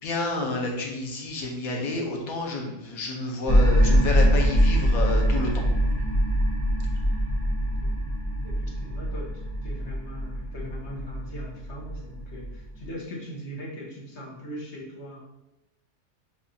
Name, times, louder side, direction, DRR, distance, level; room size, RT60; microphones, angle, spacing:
voice 1, 0.0-5.6, left 2 dB, 85° left, 0 dB, 1.3 m, -29 dB
sound 1, 3.5-12.8, equal, 20° left, 0.9 m, -23 dB
voice 2, 8.4-15.2, equal, 55° left, -3 dB, 1.2 m, -40 dB
7.3 x 2.4 x 2.7 m, 0.93 s
omnidirectional pair, 1.5 m